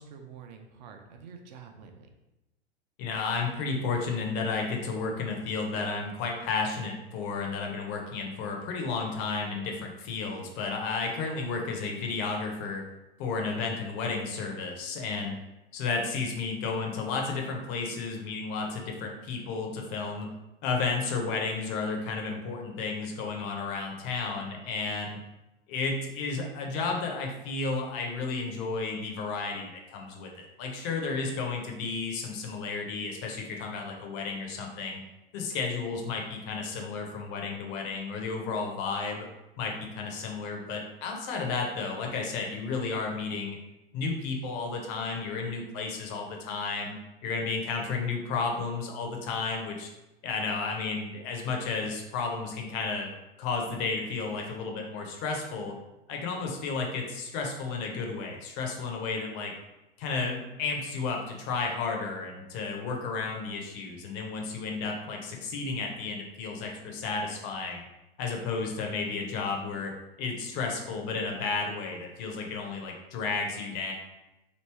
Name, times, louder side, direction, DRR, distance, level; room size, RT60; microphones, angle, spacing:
voice 1, 0.0-2.1, right 6 dB, 45° right, 4 dB, 0.5 m, -47 dB
voice 2, 3.0-12.8 13.2-15.4 15.7-20.3 20.6-25.2 25.7-35.0 35.3-39.3 39.6-43.6 43.9-47.0 47.2-49.9 50.2-53.1 53.4-55.8 56.1-59.5 60.0-67.9 68.2-73.9, left 4 dB, 30° left, 2 dB, 0.5 m, -32 dB
3.0 x 2.6 x 3.2 m, 0.96 s
figure-of-eight pair, 100°, 31 cm